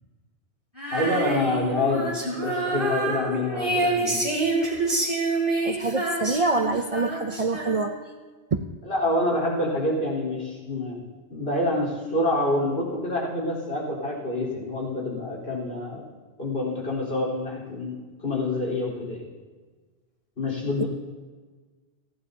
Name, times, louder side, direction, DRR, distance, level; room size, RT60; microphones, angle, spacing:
Female singing, 0.8-8.1, right 2 dB, 25° right, 2.9 m, -27 dB
voice 1, 0.9-4.2 8.8-16.0 16.4-19.2 20.4-20.9, left 2 dB, 65° left, -3 dB, 4.2 m, -27 dB
voice 2, 5.6-7.9 8.5-8.6 20.8-20.9, right 3 dB, 40° right, 5 dB, 0.5 m, -25 dB
30.0 x 11.0 x 2.8 m, 1.4 s
omnidirectional pair, 1.1 m